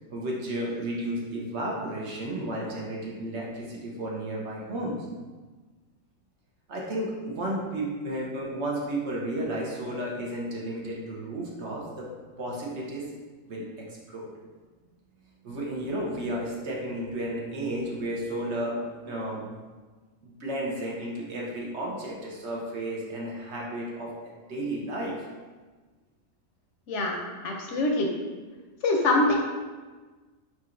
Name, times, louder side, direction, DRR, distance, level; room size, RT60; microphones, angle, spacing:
voice 1, 0.1-5.1 6.7-12.1 12.4-13.1 13.4-14.3 15.4-19.4 20.2-25.1, right 1 dB, 60° right, -3 dB, 1.0 m, -33 dB
voice 2, 26.9-27.2 27.4-28.1 28.8-29.4, left 2 dB, 70° left, 1 dB, 0.8 m, -24 dB
4.3 x 3.8 x 2.5 m, 1.3 s
omnidirectional pair, 1.4 m